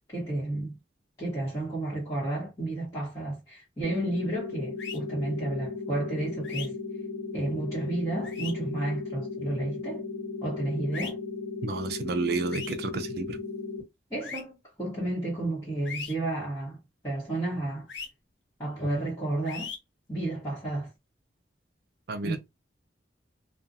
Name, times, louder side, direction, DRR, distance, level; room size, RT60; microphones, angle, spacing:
voice 1, 0.1-0.8 1.2-6.7 7.3-10.0 10.4-11.2 14.1-17.9 18.6-19.7 20.1-20.9 22.2-22.4, right 2 dB, 15° left, 1.1 m, -32 dB
sound 1, 3.8-13.8, left 4 dB, 60° left, 1.1 m, -36 dB
sound 2, 4.8-5.0 6.4-6.7 8.2-8.5 10.9-11.1 12.5-12.8 14.2-14.4 15.9-16.1 17.9-18.1 19.5-19.8, left 6 dB, 75° left, 0.7 m, -38 dB
voice 2, 11.6-13.4 22.1-22.4, right 3 dB, 60° right, 0.5 m, -31 dB
2.5 x 2.3 x 2.5 m
head